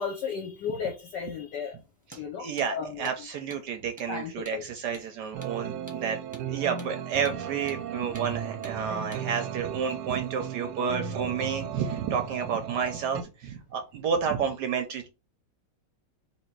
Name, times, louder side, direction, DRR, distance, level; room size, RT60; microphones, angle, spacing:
voice 1, 0.0-1.8 2.2-3.1 4.1-4.6, left 6 dB, 65° left, 1.2 m, -34 dB
Hammer, 2.0-2.3 2.6-2.7 3.0-3.2 3.5-3.6 4.0-4.1 4.4-4.6 4.9-5.1 5.4-5.6 5.9-6.0 6.3-6.5 6.8-6.9 7.2-7.4 7.7-7.8 8.1-8.3 8.6-8.8 9.1-9.3, right 1 dB, 10° right, 0.5 m, -47 dB
voice 2, 2.1-6.2 6.5-15.1, right 7 dB, 75° right, 1.0 m, -30 dB
sound 1, 5.3-13.2, right 8 dB, 90° right, 1.5 m, -36 dB
3.3 x 2.9 x 4.5 m
omnidirectional pair, 2.3 m